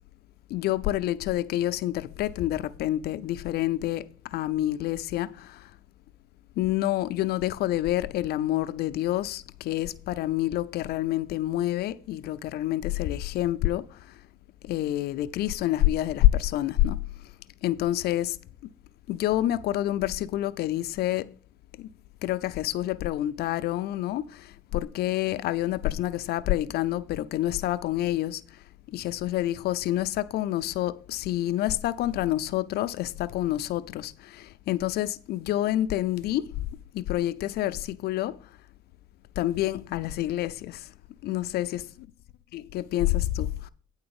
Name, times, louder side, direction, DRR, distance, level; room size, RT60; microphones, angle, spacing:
voice 1, 0.5-5.7 6.6-14.0 14.6-17.0 17.6-18.4 19.1-21.3 21.8-21.9 22.2-28.4 28.9-36.5 36.9-38.4 39.4-40.9 41.2-41.9 42.5-43.7, left 14 dB, 70° left, 0.5 m, -28 dB
9.6 x 4.0 x 7.0 m
cardioid pair, 110°, 17 cm